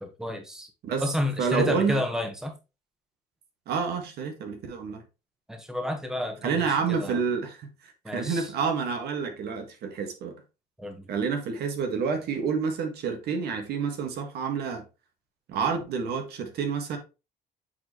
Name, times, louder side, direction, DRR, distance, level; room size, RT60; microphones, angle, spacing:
voice 1, 0.0-0.7 1.0-2.5 5.5-7.2 8.0-8.5 10.8-11.1, left 1 dB, 5° right, 1.3 m, -31 dB
voice 2, 1.4-2.0 3.7-5.0 6.4-10.4 11.1-14.8 15.5-17.0, right 6 dB, 70° right, 1.7 m, -29 dB
8.3 x 4.3 x 3.0 m
cardioid pair, 110°, 17 cm